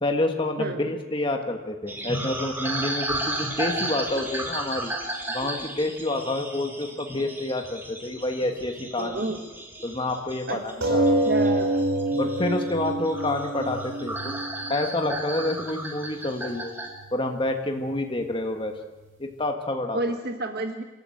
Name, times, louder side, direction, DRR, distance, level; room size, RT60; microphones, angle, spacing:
voice 1, 0.0-4.9 5.3-9.2 9.8-11.2 12.2-14.3 14.7-16.7 17.1-18.7 19.2-20.0, left 2 dB, 25° left, 4 dB, 1.6 m, -28 dB
voice 2, 0.6-0.9 9.0-9.4 10.5-10.6 11.2-11.8 19.9-20.8, right 2 dB, 50° right, 5 dB, 1.4 m, -30 dB
sound 1, 1.9-16.9, right 1 dB, 10° right, 2.6 m, -34 dB
sound 2, 10.8-15.8 16.6-16.7 17.0-17.1, right 1 dB, 65° right, 4.1 m, -26 dB
26.5 x 13.5 x 7.8 m, 1.1 s
head